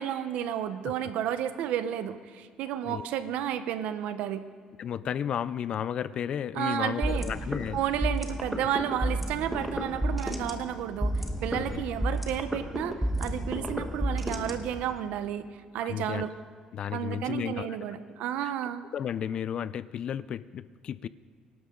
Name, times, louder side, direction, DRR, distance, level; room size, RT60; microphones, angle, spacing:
voice 1, 0.0-4.4 6.5-7.3 7.7-15.4 15.7-16.3 16.9-18.9, right 10 dB, 90° right, 11 dB, 0.9 m, -32 dB
voice 2, 4.8-7.8 11.6-11.9 15.8-16.3 16.7-17.8 18.4-18.5 18.9-21.1, left 9 dB, 45° left, 17 dB, 0.4 m, -33 dB
sound 1, 7.0-15.0, equal, 5° right, 1.1 m, -31 dB
24.0 x 12.0 x 3.8 m, 2.1 s
cardioid pair, 160°, 2 cm